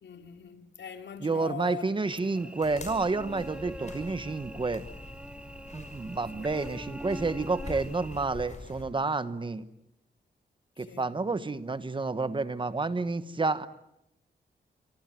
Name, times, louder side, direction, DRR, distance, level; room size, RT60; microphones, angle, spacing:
voice 1, 0.0-2.0 2.4-2.6 6.4-6.6 10.8-11.2, left 7 dB, 90° left, 3.0 m, -43 dB
voice 2, 1.2-4.8 5.7-9.7 10.8-13.7, right 3 dB, 25° right, 1.2 m, -30 dB
Cricket / Buzz, 2.0-8.2, right 1 dB, 5° right, 1.1 m, -44 dB
sound 1, 2.6-8.8, left 3 dB, 40° left, 6.1 m, -45 dB
26.5 x 24.5 x 9.2 m
wide cardioid pair, 175°, 18 cm